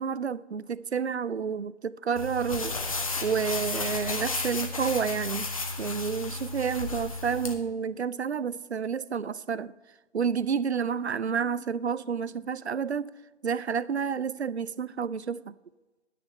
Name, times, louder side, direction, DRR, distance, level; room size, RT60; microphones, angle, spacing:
voice 1, 0.0-2.8 3.2-5.5 5.8-9.7 10.1-13.1 13.4-15.5, right 6 dB, 65° right, 0.5 m, -30 dB
sound 1, 2.2-7.5, left 3 dB, 30° left, 0.9 m, -33 dB
11.0 x 9.8 x 4.3 m
figure-of-eight pair, 145°, 35 cm